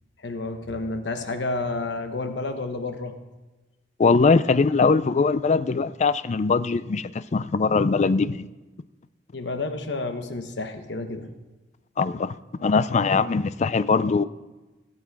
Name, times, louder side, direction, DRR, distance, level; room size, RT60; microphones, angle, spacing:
voice 1, 0.2-3.2 9.3-11.3, left 3 dB, 70° left, 1.1 m, -30 dB
voice 2, 4.0-8.5 12.0-12.3 12.6-14.2, left 4 dB, 40° left, 0.4 m, -21 dB
16.5 x 8.1 x 4.7 m
head